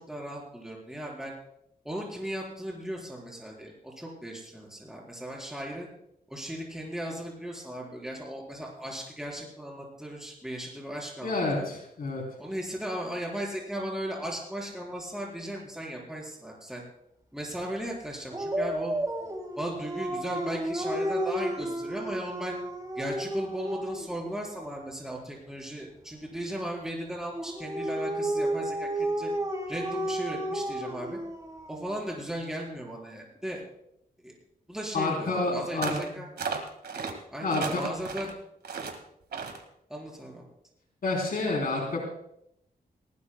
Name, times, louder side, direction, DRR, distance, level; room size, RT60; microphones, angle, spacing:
voice 1, 0.0-1.3 1.8-5.9 6.3-11.7 12.4-16.8 17.3-18.9 19.6-22.6 23.0-29.3 29.7-31.2 31.7-33.6 34.2-34.4 34.7-36.3 37.3-38.3 39.9-40.5, right 1 dB, 5° right, -2 dB, 4.2 m, -36 dB
voice 2, 11.2-12.2 34.9-36.2 37.4-37.8 41.0-42.0, left 2 dB, 65° left, -1 dB, 3.4 m, -29 dB
Dog, 18.3-24.1 27.3-31.9, right 1 dB, 20° right, 2.5 m, -32 dB
sound 1, 35.8-36.1 36.4-37.1 37.5-38.3 38.6-39.0 39.3-39.6, right 5 dB, 90° right, 1.8 m, -34 dB
19.0 x 19.0 x 2.2 m, 0.75 s
wide cardioid pair, 105°, 16 cm